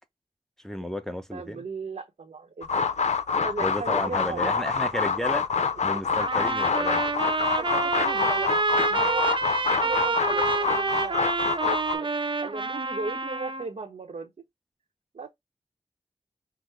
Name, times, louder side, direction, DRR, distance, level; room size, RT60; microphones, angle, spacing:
voice 1, 0.6-1.6 3.6-5.4 5.8-7.1, equal, 5° left, 0.9 m, -33 dB
voice 2, 1.3-2.7 3.4-4.7 6.3-6.4 7.5-8.6 8.9-9.3 9.6-12.1 12.4-14.3 15.1-15.3, right 4 dB, 80° right, 0.9 m, -37 dB
sound 1, 2.6-12.0, left 5 dB, 85° left, 0.6 m, -26 dB
Trumpet, 6.2-13.7, right 3 dB, 45° right, 0.7 m, -27 dB
5.8 x 2.1 x 3.3 m
wide cardioid pair, 60°, 12 cm